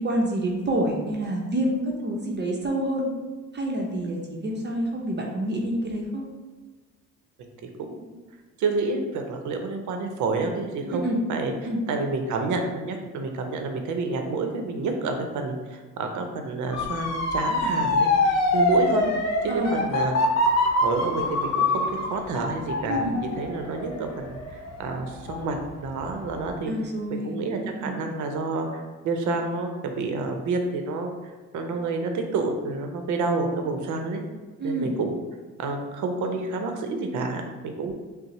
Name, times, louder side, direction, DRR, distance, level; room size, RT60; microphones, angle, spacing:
voice 1, 0.0-3.1 3.5-6.2 10.9-11.2 11.6-11.8 19.5-19.7 22.9-23.2 26.7-28.0 34.6-34.9 37.8-37.9, right 1 dB, 35° right, -1 dB, 0.6 m, -28 dB
voice 2, 7.6-8.1 8.6-11.5 11.9-19.0 19.4-20.1 20.8-26.7 27.1-31.1 31.5-34.2 34.6-35.2 35.6-37.9, right 3 dB, 75° right, 4 dB, 0.6 m, -29 dB
Motor vehicle (road) / Siren, 16.7-25.6 26.1-26.5, left 2 dB, 60° left, 0.7 m, -25 dB
5.4 x 2.0 x 3.0 m, 1.3 s
cardioid pair, 90°, 30 cm